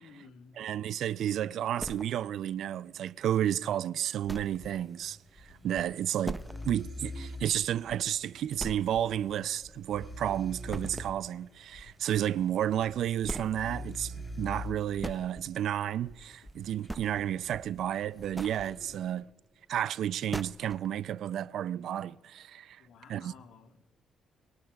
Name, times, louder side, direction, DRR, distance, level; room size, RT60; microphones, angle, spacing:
voice 1, 0.0-0.6 22.8-23.8, left 5 dB, 75° left, 1.5 m, -54 dB
voice 2, 0.6-19.3 19.7-22.8 23.1-23.3, right 11 dB, 75° right, 0.4 m, -32 dB
sound 1, 1.8-2.5 3.0-3.1 3.5-3.6 4.3-4.7 5.0-5.1 5.5-5.6 6.2-6.8 7.2-7.3 7.7-7.8 8.6-9.2 9.5-10.3 10.7-11.2 12.6-12.7 13.2-13.7 14.6-15.2 16.2-16.5 16.8-17.4 18.1-18.7 19.9-20.0 20.3-20.9, right 1 dB, 10° right, 0.5 m, -40 dB
sound 2, 4.2-15.7 16.1-19.2, left 1 dB, 20° left, 3.6 m, -45 dB
25.0 x 22.0 x 2.3 m
cardioid pair, 90°, 0 cm